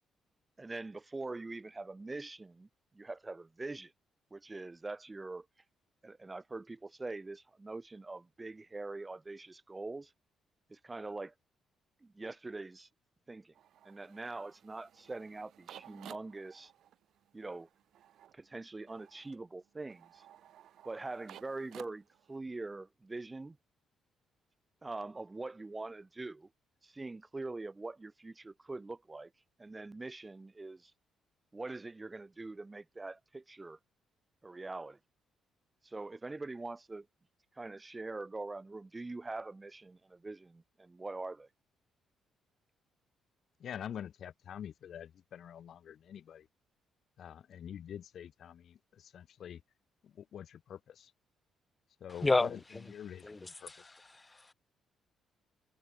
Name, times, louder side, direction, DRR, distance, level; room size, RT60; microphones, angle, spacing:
voice 1, 0.6-2.7 2.9-3.9 4.3-5.4 6.0-10.1 10.7-11.3 12.0-12.9 13.3-13.5 13.8-16.7 17.3-17.7 18.3-20.2 20.8-23.6 24.8-26.5 26.8-29.3 29.6-30.9 31.5-33.8 34.4-35.0 35.8-37.1 37.6-41.5, right 3 dB, 20° right, 1.5 m, -43 dB
coin counter, 13.5-22.4, right 11 dB, 75° right, 1.6 m, -56 dB
voice 2, 43.6-46.5 47.2-49.6 50.0-51.1 52.0-52.6 52.9-53.9, left 9 dB, 65° left, 1.1 m, -46 dB
voice 3, 52.2-52.6 53.2-54.5, left 3 dB, 20° left, 0.8 m, -32 dB
cardioid pair, 90°, 0 cm